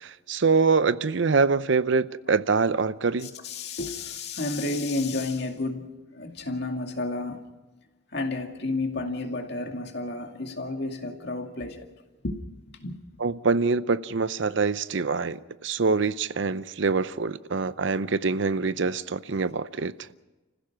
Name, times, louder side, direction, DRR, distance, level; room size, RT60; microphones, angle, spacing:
voice 1, 0.0-3.3 13.2-19.9, right 4 dB, 65° right, 0.6 m, -25 dB
voice 2, 3.2-7.5 8.1-11.9 12.2-13.0, left 2 dB, 55° left, 2.3 m, -31 dB
30.0 x 15.5 x 6.0 m
head